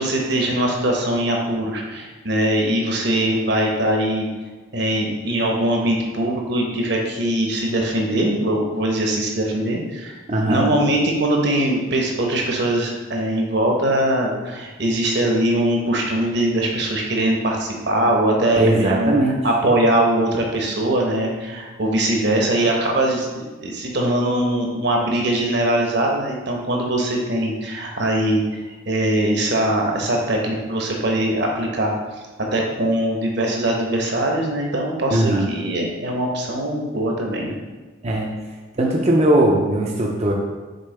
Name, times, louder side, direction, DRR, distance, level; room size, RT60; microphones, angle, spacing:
voice 1, 0.0-4.3 4.7-19.2 19.4-28.4 28.9-31.9 32.5-37.6, right 1 dB, 55° right, 0 dB, 1.0 m, -21 dB
voice 2, 10.3-10.7 18.5-19.4 35.1-35.5 38.0-38.3 38.8-40.3, right 1 dB, 30° right, -1 dB, 0.6 m, -19 dB
6.6 x 4.4 x 3.3 m, 1.3 s
head